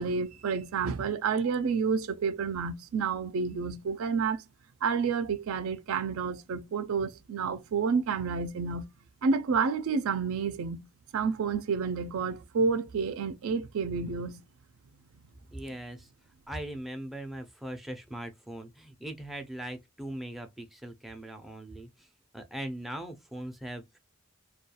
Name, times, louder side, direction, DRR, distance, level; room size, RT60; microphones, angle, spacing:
voice 1, 0.0-4.4 4.8-8.9 9.2-10.9 11.1-14.4, right 5 dB, 90° right, 0.4 m, -29 dB
voice 2, 15.5-16.1 16.5-22.1 22.3-24.0, right 1 dB, ahead, 0.3 m, -40 dB
2.2 x 2.2 x 2.8 m
head